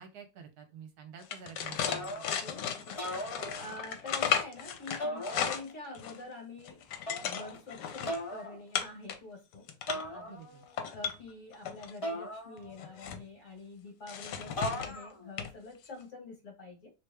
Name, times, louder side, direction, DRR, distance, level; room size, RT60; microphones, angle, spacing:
voice 1, 0.0-2.2 10.2-10.6, right 7 dB, 70° right, 6 dB, 1.1 m, -49 dB
sound 1, 1.2-6.2 6.6-8.2 8.7-9.2 9.5-10.1 10.6-11.9 12.6-13.2 14.1-15.0 15.4-15.5 15.8-16.0, left 8 dB, 80° left, 1.2 m, -35 dB
sound 2, 1.9-2.5 2.9-4.0 5.0-5.9 7.1-7.6 8.1-8.6 9.9-10.7 12.0-13.0 14.6-15.3, equal, 25° left, 0.8 m, -38 dB
voice 2, 2.4-6.8 7.2-10.4 10.9-16.9, left 3 dB, 50° left, 1 dB, 1.5 m, -46 dB
3.2 x 2.9 x 3.3 m, 0.28 s
omnidirectional pair, 1.8 m